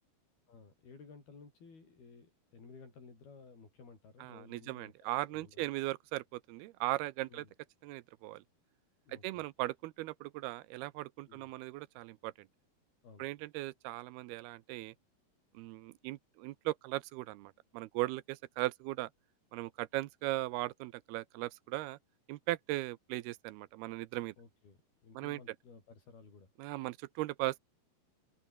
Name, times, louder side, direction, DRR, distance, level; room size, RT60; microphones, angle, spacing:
voice 1, 0.5-5.7 7.3-7.5 9.1-9.4 11.3-11.5 13.0-13.3 24.4-26.5, left 4 dB, 70° left, 9.3 m, -56 dB
voice 2, 4.2-7.4 7.8-8.4 9.1-12.5 13.2-14.9 15.5-19.1 19.5-22.0 22.3-24.3 25.1-25.4 26.6-27.6, right 18 dB, 85° right, 2.7 m, -38 dB
open air
omnidirectional pair, 4.5 m